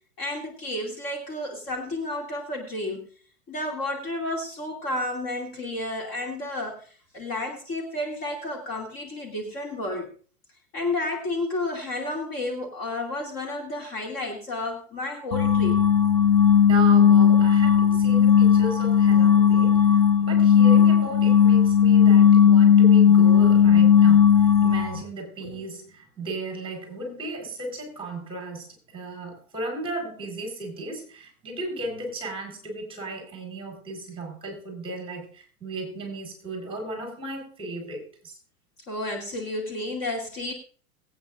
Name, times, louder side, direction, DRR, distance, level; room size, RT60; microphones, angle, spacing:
voice 1, 0.2-3.1 3.5-10.1 10.7-15.8 25.4-25.6 38.9-40.5, left 2 dB, 30° left, 2.6 m, -31 dB
sound 1, 15.3-25.0, left 8 dB, 15° left, 0.5 m, -16 dB
voice 2, 16.7-28.7 28.9-38.4, right 2 dB, 10° right, 4.8 m, -35 dB
22.0 x 8.9 x 2.6 m
supercardioid pair, 140°, 44 cm